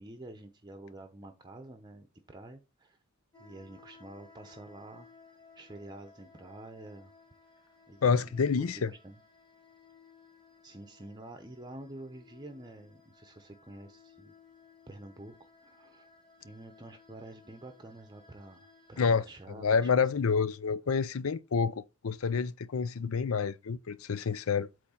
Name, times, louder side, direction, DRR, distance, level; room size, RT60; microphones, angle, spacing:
voice 1, 0.0-3.0 3.4-5.1 5.6-7.1 7.9-9.2 10.6-14.3 14.9-15.4 15.6-16.1 16.4-19.9, right 1 dB, 20° right, 0.8 m, -48 dB
sound 1, 3.3-19.0, left 4 dB, 20° left, 2.4 m, -59 dB
voice 2, 8.0-8.9 19.0-19.2 19.6-24.7, left 5 dB, 85° left, 0.5 m, -28 dB
8.4 x 3.2 x 5.6 m
head